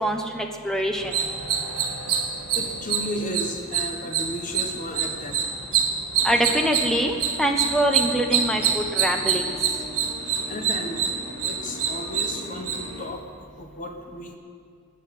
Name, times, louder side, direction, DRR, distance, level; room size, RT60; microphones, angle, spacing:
voice 1, 0.0-1.1 6.2-9.5, right 1 dB, ahead, 3 dB, 1.0 m, -24 dB
sound 1, 1.0-13.1, right 7 dB, 85° right, 1.9 m, -26 dB
voice 2, 2.5-5.4 5.9-6.2 10.2-11.0 11.4-13.2 13.6-14.4, left 1 dB, 35° left, 3 dB, 1.3 m, -34 dB
sound 2, 6.2-13.1, equal, 35° right, 2.8 m, -41 dB
19.5 x 6.6 x 9.3 m, 2.2 s
head